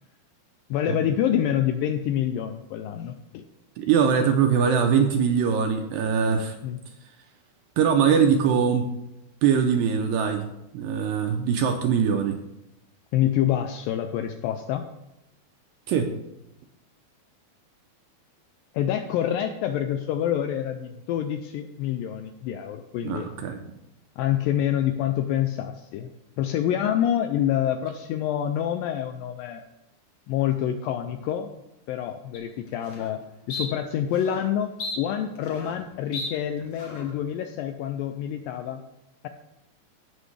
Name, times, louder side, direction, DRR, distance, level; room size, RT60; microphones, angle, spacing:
voice 1, 0.7-3.4 6.6-6.8 13.1-14.9 18.7-23.3 24.2-29.6 30.3-31.5 31.9-33.2 33.5-38.8, left 10 dB, 85° left, 7 dB, 2.0 m, -27 dB
voice 2, 3.8-6.6 7.8-8.9 9.4-12.4 15.9-16.1 23.0-23.6, right 7 dB, 80° right, 5 dB, 2.1 m, -22 dB
sound 1, 32.3-32.4 32.9-33.1 33.5-33.7 34.2-34.4 34.8-35.8 36.1-36.3 36.8-37.1, left 2 dB, 60° left, 1.5 m, -34 dB
16.5 x 6.2 x 3.3 m, 0.88 s
omnidirectional pair, 4.5 m